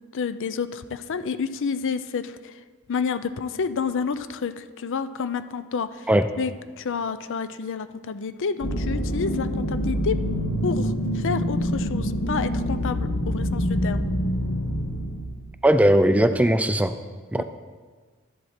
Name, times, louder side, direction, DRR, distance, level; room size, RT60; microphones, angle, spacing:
voice 1, 0.1-2.5 2.9-6.1 6.4-6.5 6.8-10.1 10.6-14.1 17.4-17.5, left 5 dB, 60° left, 12 dB, 0.5 m, -29 dB
sound 1, 8.6-15.2, equal, 80° left, 1.6 m, -26 dB
voice 2, 15.6-16.9 17.3-17.4, right 1 dB, 5° right, 10 dB, 0.3 m, -18 dB
12.5 x 7.8 x 4.4 m, 1.5 s
head